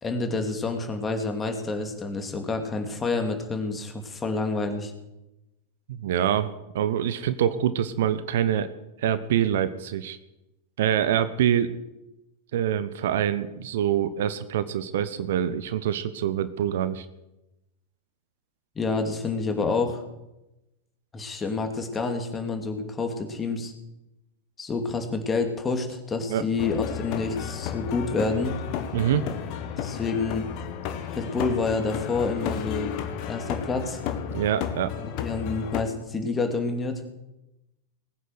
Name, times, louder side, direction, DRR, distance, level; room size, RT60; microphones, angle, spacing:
voice 1, 0.0-4.9 18.8-20.0 21.1-23.7 24.6-28.5 29.8-30.5 31.1-32.9 33.3-34.0 35.0-37.0, left 3 dB, 15° left, 5 dB, 2.6 m, -28 dB
voice 2, 5.9-8.7 9.0-10.2 10.8-11.8 12.5-17.1 26.3-26.4 28.9-29.3 34.3-34.9, right 10 dB, 55° right, 13 dB, 0.9 m, -25 dB
sound 1, 26.6-35.8, left 8 dB, 45° left, 1.6 m, -33 dB
20.0 x 9.4 x 6.5 m, 0.95 s
figure-of-eight pair, 90°, 0 cm